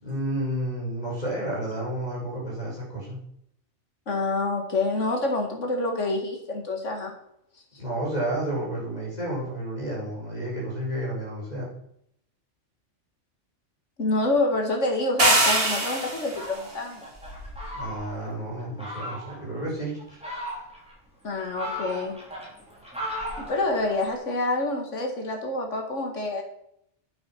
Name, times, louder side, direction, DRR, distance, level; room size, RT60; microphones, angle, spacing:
voice 1, 0.0-3.2 7.8-11.7 17.7-20.2, right 1 dB, 35° left, -5 dB, 5.4 m, -31 dB
voice 2, 4.1-7.1 14.0-17.0 21.2-22.1 23.5-26.4, left 2 dB, 80° left, 3 dB, 2.3 m, -27 dB
sound 1, 15.2-16.5, right 1 dB, 50° right, 2.5 m, -22 dB
Fowl, 16.2-18.3 18.8-19.4 20.0-20.9 21.4-24.1, equal, 5° right, 3.7 m, -37 dB
9.5 x 8.7 x 5.9 m, 0.73 s
omnidirectional pair, 1.2 m